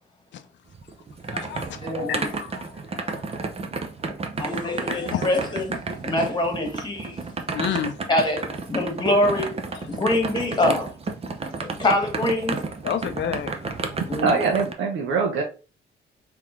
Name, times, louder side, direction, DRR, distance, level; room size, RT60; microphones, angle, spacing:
sound 1, 0.7-14.7, right 4 dB, 30° right, 0.6 m, -31 dB
voice 1, 1.3-3.3 4.6-5.3 7.5-8.0 9.7-9.8 12.8-14.0, left 9 dB, 65° left, 0.5 m, -31 dB
voice 2, 1.8-2.3 4.4-7.2 8.1-9.6 9.9-10.9 11.6-12.6 14.1-14.4, left 1 dB, 20° left, 1.4 m, -24 dB
voice 3, 14.2-15.4, right 4 dB, 75° right, 0.9 m, -23 dB
3.8 x 3.0 x 3.2 m
cardioid pair, 90°, 20 cm